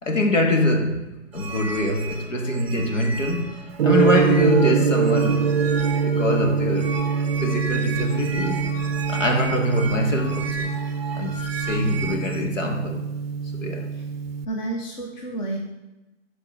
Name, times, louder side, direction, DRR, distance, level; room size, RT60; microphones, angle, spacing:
voice 1, 0.0-5.8 6.1-7.0 7.4-8.8 9.1-10.7 11.1-13.0 13.6-13.9, left 1 dB, 85° left, 3 dB, 2.0 m, -24 dB
sound 1, 1.3-12.4, right 4 dB, 5° right, 0.6 m, -35 dB
Gong, 3.8-14.4, right 6 dB, 55° right, 0.5 m, -24 dB
voice 2, 14.4-15.6, right 2 dB, 35° left, 0 dB, 1.0 m, -30 dB
10.0 x 4.5 x 6.3 m, 1.0 s
hypercardioid pair, 145°, 37 cm